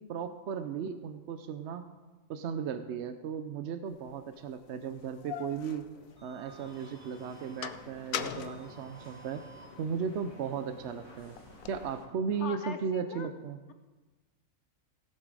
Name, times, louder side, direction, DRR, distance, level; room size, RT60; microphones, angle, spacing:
voice 1, 0.1-1.9 2.3-5.9 6.2-9.4 9.8-11.4 11.7-13.6, right 6 dB, 65° right, 9 dB, 0.8 m, -36 dB
sound 1, 4.1-4.2 4.9-6.7 7.1-9.7 10.1-11.9, left 9 dB, 85° left, 1.0 m, -41 dB
sound 2, 5.3-11.9, right 2 dB, 20° right, 4.6 m, -57 dB
sound 3, 6.5-12.1, left 1 dB, 30° left, 3.0 m, -54 dB
voice 2, 12.4-13.3, left 6 dB, 60° left, 8 dB, 1.1 m, -41 dB
17.0 x 7.7 x 4.8 m, 1.2 s
omnidirectional pair, 1.4 m